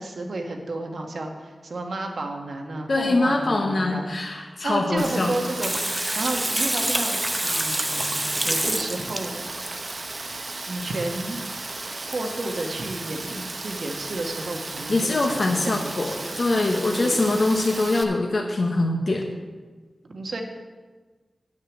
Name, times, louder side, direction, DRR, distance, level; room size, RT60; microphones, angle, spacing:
voice 1, 0.0-5.8 6.1-9.5 10.7-11.4 12.1-16.2 16.9-17.3 20.0-20.4, right 2 dB, 70° right, 3 dB, 1.4 m, -32 dB
voice 2, 2.9-5.3 14.9-19.2, left 2 dB, 50° left, 1 dB, 1.0 m, -23 dB
Rain, 5.0-18.0, right 2 dB, 45° right, 0.9 m, -35 dB
Water tap faucet / Sink (filling or washing), 5.6-9.9 11.4-11.5 11.8-11.9 12.1-12.2, right 1 dB, 20° right, 0.7 m, -27 dB
9.6 x 6.6 x 7.3 m, 1.4 s
wide cardioid pair, 100°, 0 cm